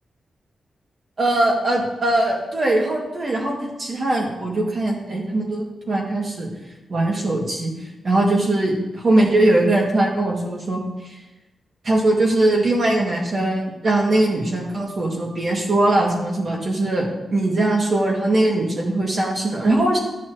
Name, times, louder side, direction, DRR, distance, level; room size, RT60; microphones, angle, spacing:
voice 1, 1.2-6.5 6.9-7.7 8.0-10.8 11.8-20.0, right 2 dB, 40° right, -1 dB, 1.8 m, -20 dB
13.0 x 6.3 x 2.8 m, 1.0 s
wide cardioid pair, 160°, 0 cm